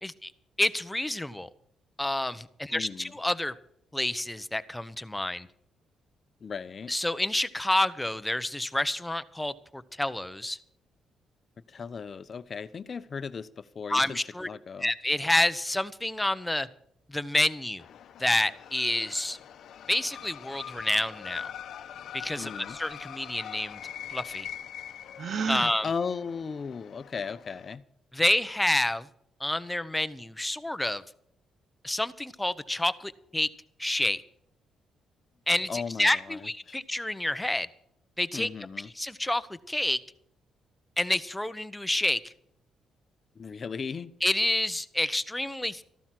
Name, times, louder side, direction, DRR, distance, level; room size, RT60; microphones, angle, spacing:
voice 1, 0.6-1.5 2.0-3.5 3.9-5.5 6.9-10.6 13.9-14.5 14.8-16.7 17.1-17.8 18.2-19.4 19.9-21.5 22.1-23.8 24.1-24.5 25.5-25.9 28.1-29.1 29.4-31.0 31.8-33.5 33.8-34.2 35.5-37.7 38.2-38.5 39.0-40.0 41.0-42.3 44.2-45.8, left 1 dB, 10° left, 13 dB, 1.0 m, -28 dB
voice 2, 2.7-3.1 6.4-6.9 11.7-14.9 22.4-22.8 25.6-27.8 35.7-36.8 38.3-38.9 43.3-44.1, left 5 dB, 45° left, 13 dB, 0.8 m, -36 dB
sound 1, 17.8-27.7, left 9 dB, 70° left, 0.9 m, -43 dB
Gasp, 25.2-25.7, right 6 dB, 55° right, 0.9 m, -30 dB
14.5 x 12.0 x 6.0 m, 0.73 s
cardioid pair, 80°, 0 cm